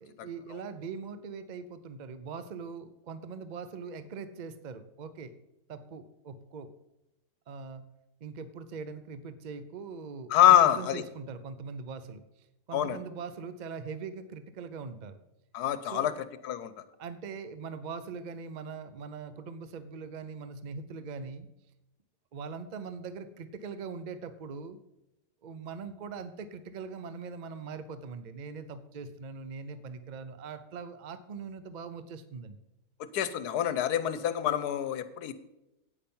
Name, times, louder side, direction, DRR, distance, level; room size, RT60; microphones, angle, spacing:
voice 1, 0.0-5.3 5.7-6.7 7.5-7.9 8.2-12.2 12.7-15.2 15.8-16.2 17.0-21.5 22.3-24.8 25.4-32.6, right 5 dB, 50° right, 12 dB, 0.5 m, -41 dB
voice 2, 10.3-11.0 12.7-13.0 15.5-16.1 16.4-16.7 33.1-35.3, left 11 dB, 80° left, 13 dB, 1.3 m, -25 dB
9.0 x 8.7 x 5.5 m, 0.92 s
omnidirectional pair, 1.7 m